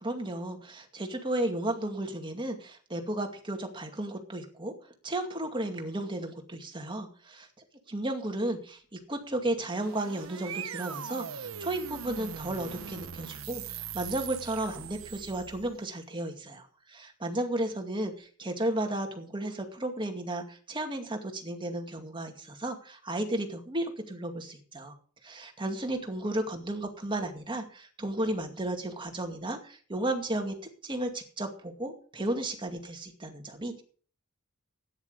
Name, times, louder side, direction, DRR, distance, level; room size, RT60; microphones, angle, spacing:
voice 1, 0.0-4.7 5.0-7.5 7.9-24.9 25.2-30.6 30.8-33.8, right 1 dB, 20° right, 4 dB, 2.2 m, -34 dB
sound 1, 9.5-15.8, right 8 dB, 65° right, 0.8 m, -41 dB
13.0 x 10.0 x 5.1 m, 0.43 s
head